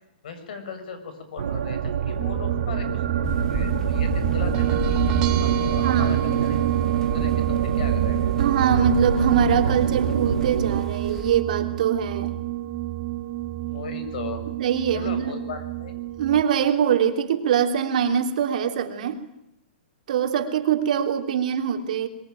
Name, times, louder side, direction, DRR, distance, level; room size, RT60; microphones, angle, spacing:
voice 1, 0.2-6.6 6.9-8.3 13.6-14.5 14.9-15.9, left 5 dB, 55° left, 10 dB, 6.6 m, -38 dB
sound 1, 1.4-10.8, right 7 dB, 70° right, 1.5 m, -26 dB
sound 2, 2.2-16.4, right 15 dB, 20° right, 1.5 m, -28 dB
sound 3, 3.2-11.4, left 3 dB, 10° left, 1.2 m, -35 dB
voice 2, 5.8-6.2 8.4-12.3 14.6-15.4 16.2-19.2 20.1-22.1, right 8 dB, 50° right, 5 dB, 3.1 m, -23 dB
24.0 x 23.0 x 9.2 m, 0.83 s
hypercardioid pair, 170°, 5 cm